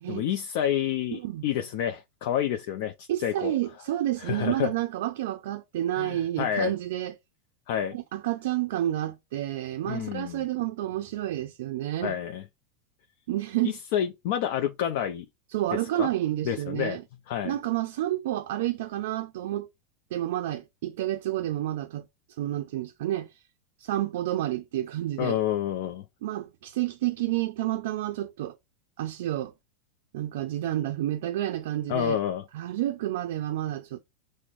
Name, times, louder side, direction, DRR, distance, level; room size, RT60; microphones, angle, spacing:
voice 1, 0.1-3.6 4.2-4.7 6.0-6.7 7.7-8.0 9.9-10.4 12.0-12.4 13.6-15.3 15.7-16.1 16.4-17.0 17.3-17.5 25.2-26.0 31.9-32.5, left 10 dB, 60° left, 0.5 m, -29 dB
voice 2, 1.1-1.4 3.1-7.1 7.9-12.2 13.3-13.8 15.5-17.0 17.4-19.7 20.1-22.1 22.4-23.3 23.8-25.4 26.2-28.6 29.0-29.5 30.1-32.2 32.5-34.0, right 13 dB, 75° right, 0.4 m, -30 dB
6.0 x 2.1 x 2.5 m
supercardioid pair, 145°, 0 cm